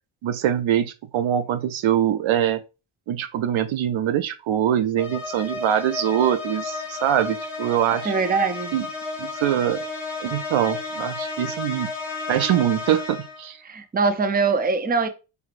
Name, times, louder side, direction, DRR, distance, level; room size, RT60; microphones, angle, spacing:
voice 1, 0.2-2.6 3.1-8.1 8.7-8.9 9.2-9.8 10.2-11.9 12.3-13.6, right 10 dB, 70° right, 0.5 m, -23 dB
sound 1, 5.0-13.5, left 3 dB, 5° right, 1.0 m, -33 dB
voice 2, 8.0-8.7 13.6-15.1, right 4 dB, 20° right, 0.5 m, -22 dB
4.8 x 3.2 x 2.5 m
cardioid pair, 85°, 49 cm